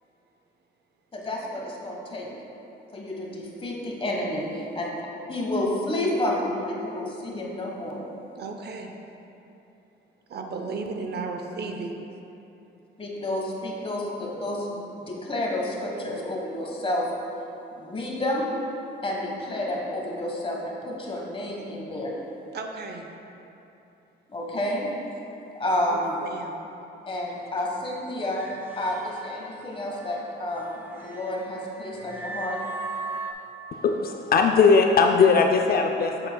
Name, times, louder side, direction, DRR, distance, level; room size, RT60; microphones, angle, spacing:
voice 1, 1.1-2.3 2.9-4.9 5.3-8.0 13.0-17.1 17.8-18.5 19.0-22.1 24.3-24.9 25.5-26.2 27.1-28.4 28.8-32.6, left 1 dB, 25° left, -2 dB, 1.3 m, -30 dB
voice 2, 8.4-8.9 10.3-11.9 22.5-23.1 25.9-26.6, right 4 dB, 55° right, 4 dB, 0.6 m, -34 dB
sound 1, 28.3-33.3, right 3 dB, 10° right, 0.7 m, -38 dB
voice 3, 33.8-36.3, left 5 dB, 50° left, 3 dB, 0.4 m, -19 dB
7.6 x 7.5 x 2.3 m, 2.9 s
cardioid pair, 90°, 20 cm